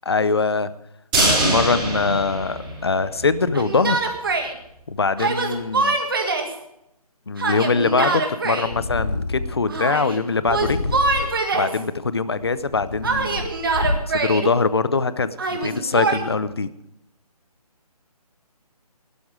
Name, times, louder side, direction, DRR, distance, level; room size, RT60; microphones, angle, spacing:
voice 1, 0.1-0.7 1.2-4.0 4.9-6.0 7.3-11.2 11.5-13.5 14.1-16.7, left 4 dB, 40° left, 15 dB, 0.7 m, -23 dB
sound 1, 1.1-3.3 3.6-3.7 4.0-4.1, right 1 dB, 10° right, 4.3 m, -22 dB
Yell, 3.5-4.5 5.2-6.6 7.4-8.7 9.7-10.2 10.5-11.8 13.0-14.5 15.4-16.2, right 3 dB, 35° right, 1.8 m, -24 dB
Purr, 8.7-9.7 10.4-11.5 12.2-14.3, left 2 dB, 75° left, 5.4 m, -28 dB
16.5 x 12.5 x 4.8 m, 0.80 s
hypercardioid pair, 180°, 20 cm